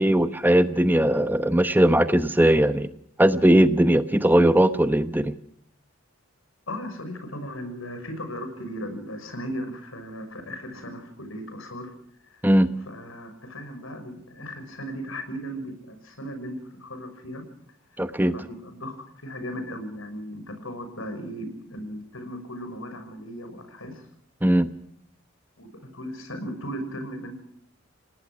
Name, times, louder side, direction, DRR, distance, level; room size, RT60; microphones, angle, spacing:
voice 1, 0.0-2.9 3.2-5.3 12.4-12.7 18.0-18.3 24.4-24.7, right 1 dB, 10° right, 11 dB, 0.9 m, -19 dB
voice 2, 6.7-11.9 12.3-12.4 12.9-17.4 18.3-24.0 25.6-27.3, equal, 90° left, 8 dB, 6.0 m, -36 dB
29.0 x 18.5 x 6.1 m, 0.67 s
head